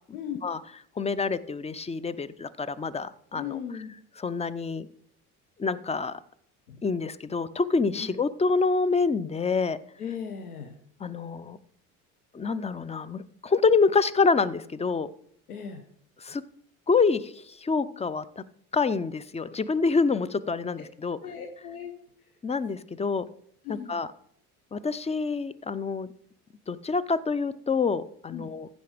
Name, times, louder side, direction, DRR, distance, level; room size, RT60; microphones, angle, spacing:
voice 1, 0.1-0.4 3.4-3.9 6.7-6.8 8.0-8.1 10.0-10.8 15.5-15.8 21.2-21.9 23.6-24.0 28.3-28.5, left 8 dB, 85° left, 4 dB, 1.1 m, -37 dB
voice 2, 1.0-3.6 4.2-4.9 5.6-6.2 6.8-9.8 11.0-11.6 12.3-15.1 16.2-16.4 16.9-18.4 18.7-21.2 22.4-23.2 23.7-24.1 24.7-26.1 26.7-28.7, left 4 dB, 15° left, 17 dB, 0.6 m, -27 dB
15.0 x 5.4 x 5.0 m, 0.66 s
hypercardioid pair, 60°, 43 cm